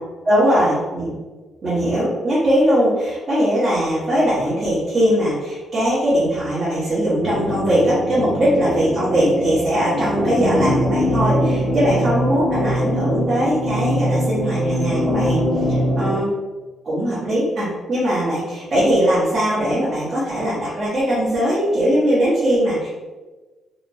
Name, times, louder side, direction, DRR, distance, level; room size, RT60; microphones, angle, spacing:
voice 1, 0.2-1.1 1.6-16.3 16.8-22.9, equal, 30° right, -11 dB, 0.9 m, -20 dB
sound 1, 7.2-16.1, equal, 85° right, 0.9 m, -22 dB
2.8 x 2.0 x 2.6 m, 1.2 s
cardioid pair, 160°, 0 cm